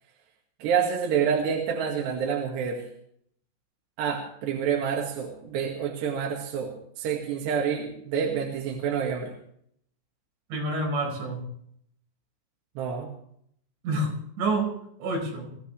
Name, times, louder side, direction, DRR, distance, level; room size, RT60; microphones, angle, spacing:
voice 1, 0.6-2.9 4.0-9.3 12.8-13.1, right 7 dB, 70° right, 0 dB, 4.2 m, -28 dB
voice 2, 10.5-11.5 13.8-14.7 15.0-15.5, right 2 dB, 85° right, 0 dB, 7.6 m, -28 dB
22.5 x 16.5 x 3.3 m, 0.68 s
omnidirectional pair, 5.1 m